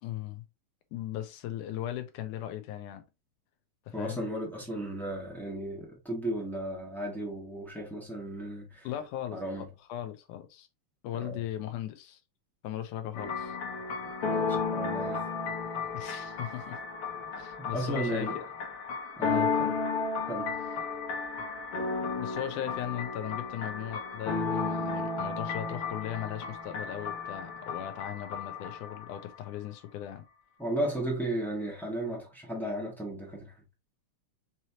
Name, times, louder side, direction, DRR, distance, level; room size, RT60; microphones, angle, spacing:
voice 1, 0.0-0.4 0.9-3.0 3.9-4.2 8.8-10.7 11.0-12.2 12.6-13.6 15.9-16.8 17.4-18.4 19.3-19.5 22.1-30.2, left 12 dB, 85° left, 2.3 m, -38 dB
voice 2, 3.9-8.9 9.3-9.6 11.2-11.4 14.3-15.3 17.6-18.4 19.2-19.7 20.3-20.5 30.6-33.5, right 1 dB, ahead, 0.6 m, -35 dB
sound 1, 13.1-29.2, left 4 dB, 60° left, 1.8 m, -33 dB
6.0 x 3.0 x 2.9 m
omnidirectional pair, 3.5 m